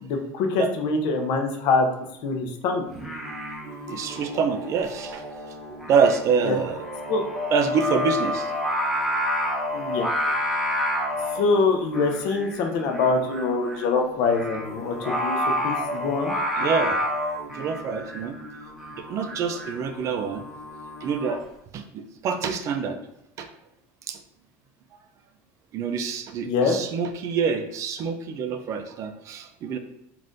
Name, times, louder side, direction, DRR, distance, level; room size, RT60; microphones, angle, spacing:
voice 1, 0.0-1.9 2.2-2.8 6.4-6.6 7.1-7.2 9.7-10.1 11.3-15.4 15.6-16.3 26.4-26.8, left 4 dB, 60° left, 4 dB, 0.6 m, -24 dB
Singing, 2.9-21.4, left 1 dB, 5° right, 0.8 m, -30 dB
voice 2, 3.9-5.2 5.9-6.8 7.5-8.5 16.6-17.0 17.5-18.3 19.0-20.4 21.0-21.4 21.7-23.0 23.4-23.5 24.1-24.2 25.7-29.8, right 6 dB, 40° right, 7 dB, 0.3 m, -26 dB
3.4 x 2.5 x 2.6 m, 0.83 s
supercardioid pair, 125°, 8 cm